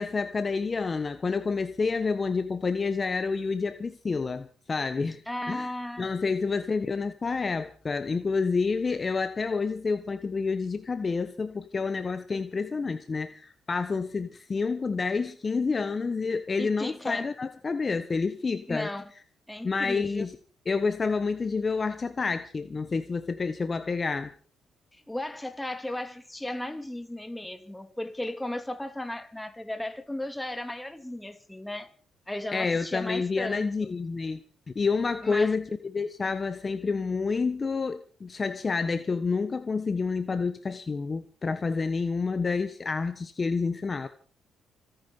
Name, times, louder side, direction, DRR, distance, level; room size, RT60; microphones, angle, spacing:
voice 1, 0.0-5.7 6.0-18.9 19.6-20.4 20.7-24.3 32.5-34.4 34.7-44.1, left 4 dB, 35° left, 1.2 m, -29 dB
voice 2, 5.3-6.3 16.6-17.3 18.7-19.1 19.5-20.3 24.9-31.9 32.3-33.9 35.2-35.5, left 1 dB, 5° left, 2.6 m, -35 dB
26.0 x 10.0 x 5.4 m
cardioid pair, 90°, 0 cm